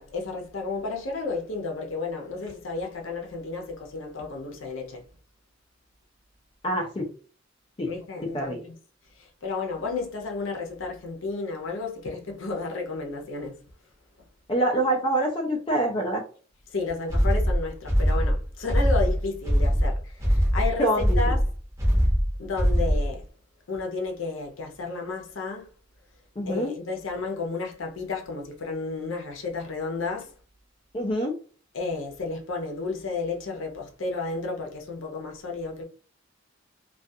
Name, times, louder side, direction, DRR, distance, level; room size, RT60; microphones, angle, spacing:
voice 1, 0.0-5.0 7.9-8.7 9.2-13.6 16.7-21.5 22.4-23.3 23.7-25.7 26.5-30.3 31.7-35.8, left 3 dB, 80° left, 0.6 m, -32 dB
voice 2, 6.6-7.1 7.8-7.9 8.3-8.6 14.5-16.2 20.8-21.2 26.4-26.7 30.9-31.3, right 1 dB, 25° left, 0.4 m, -25 dB
sound 1, 17.1-23.2, equal, 15° right, 0.8 m, -22 dB
2.3 x 2.3 x 2.6 m
head